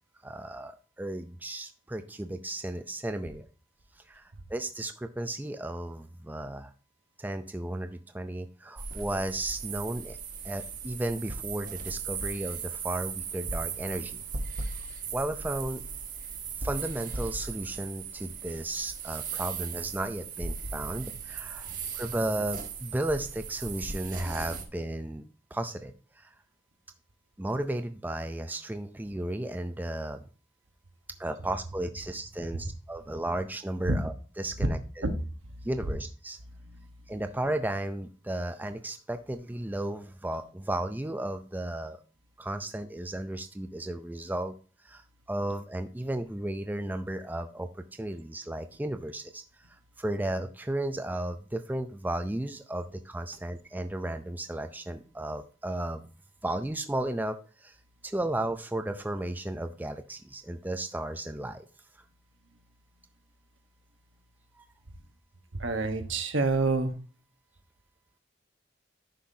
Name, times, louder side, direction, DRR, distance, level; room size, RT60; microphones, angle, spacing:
voice 1, 0.2-3.5 4.1-6.7 7.2-10.2 10.4-14.2 15.1-15.9 16.6-25.2 25.5-26.3 27.4-30.2 31.2-35.0 35.6-36.4 37.1-42.0 42.4-44.5 44.8-49.4 49.7-56.0 56.4-57.8 58.0-61.7 64.6-64.7, right 1 dB, 10° right, 8 dB, 0.4 m, -34 dB
sound 1, 8.8-24.6, right 5 dB, 45° right, 1.1 m, -37 dB
voice 2, 65.6-66.9, right 3 dB, 80° right, 6 dB, 1.2 m, -27 dB
10.0 x 5.6 x 2.7 m, 0.36 s
head